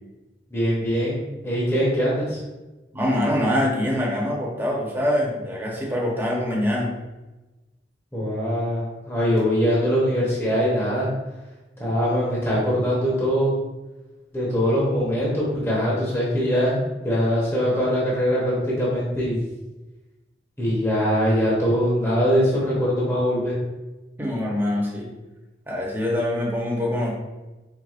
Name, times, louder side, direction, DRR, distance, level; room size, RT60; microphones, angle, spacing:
voice 1, 0.5-2.4 8.1-11.1 11.8-13.6 14.3-19.4 20.6-23.6, equal, 15° left, -6 dB, 0.9 m, -22 dB
voice 2, 2.9-6.9 24.2-25.1 25.7-27.1, left 1 dB, 10° right, -3 dB, 0.8 m, -24 dB
4.8 x 3.5 x 2.4 m, 1.1 s
head